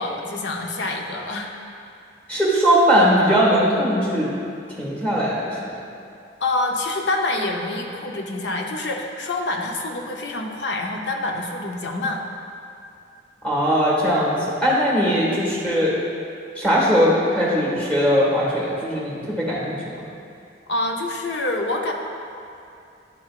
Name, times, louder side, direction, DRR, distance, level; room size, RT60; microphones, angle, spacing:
voice 1, 0.0-1.5 6.4-12.2 15.0-15.2 20.7-21.9, left 2 dB, 65° left, 1 dB, 0.6 m, -26 dB
voice 2, 2.3-4.3 4.8-5.7 13.4-15.9 16.5-20.1, equal, 10° left, -7 dB, 1.4 m, -20 dB
10.5 x 3.8 x 2.4 m, 2.6 s
head